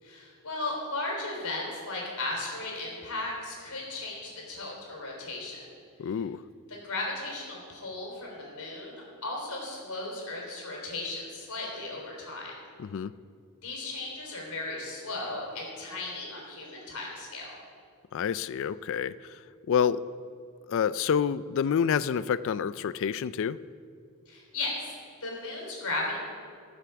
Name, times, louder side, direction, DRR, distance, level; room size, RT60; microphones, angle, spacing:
voice 1, 0.0-5.7 6.7-12.5 13.6-17.6 24.3-24.9 25.2-26.2, left 2 dB, 85° left, -2 dB, 4.0 m, -36 dB
voice 2, 6.0-6.4 12.8-13.1 18.1-20.0 20.7-23.6, left 7 dB, 60° left, 16 dB, 0.3 m, -28 dB
16.0 x 7.1 x 7.0 m, 2.3 s
head